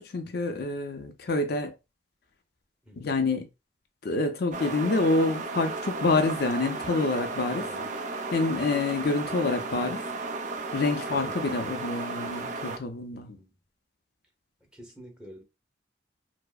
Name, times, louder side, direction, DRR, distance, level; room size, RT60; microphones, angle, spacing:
voice 1, 0.0-1.7 3.0-3.5 4.0-7.9 8.3-10.0 10.7-13.3, left 3 dB, 60° left, 0.5 m, -27 dB
voice 2, 2.8-3.2 7.6-7.9 11.1-11.4 13.1-13.6 14.6-15.4, equal, 5° right, 1.0 m, -49 dB
sound 1, 4.5-12.8, right 3 dB, 45° right, 0.5 m, -34 dB
4.6 x 2.0 x 2.3 m
head